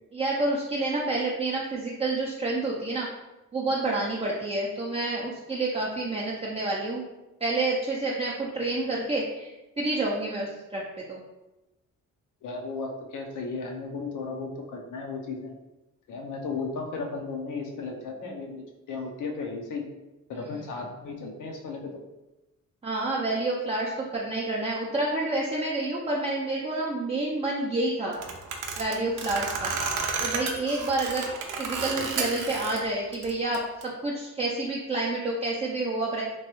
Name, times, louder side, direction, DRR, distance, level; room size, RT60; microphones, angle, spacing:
voice 1, 0.1-3.1 3.5-7.0 7.4-9.5 9.8-10.8 11.1-11.2 22.8-28.2 28.8-29.7 30.2-31.3 31.6-33.6 34.0-36.2, right 2 dB, 20° right, -5 dB, 0.4 m, -28 dB
voice 2, 12.4-15.5 16.1-19.8 20.3-22.0, left 4 dB, 70° left, 2 dB, 0.7 m, -35 dB
sound 1, 28.1-32.8 33.1-33.8, right 4 dB, 70° right, 0.5 m, -32 dB
3.0 x 2.2 x 3.0 m, 1.0 s
cardioid pair, 100°, 32 cm